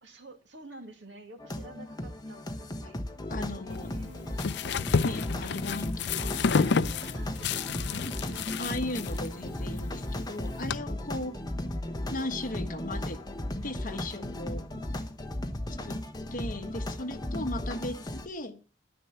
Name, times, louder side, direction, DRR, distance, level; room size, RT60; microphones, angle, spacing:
voice 1, 0.0-3.0 3.6-4.4 7.0-9.0 11.1-11.5 14.7-15.0 15.6-16.0, right 2 dB, 70° right, 5 dB, 2.3 m, -51 dB
sound 1, 1.4-18.3, left 1 dB, 20° left, 1.1 m, -36 dB
voice 2, 3.3-3.9 5.0-6.6 8.0-11.3 12.1-13.2 13.6-14.7 15.7-16.0 16.3-18.6, left 1 dB, 45° left, 8 dB, 1.3 m, -37 dB
sound 2, 3.7-10.8, left 5 dB, 65° left, 0.5 m, -31 dB
11.5 x 10.0 x 5.7 m, 0.37 s
head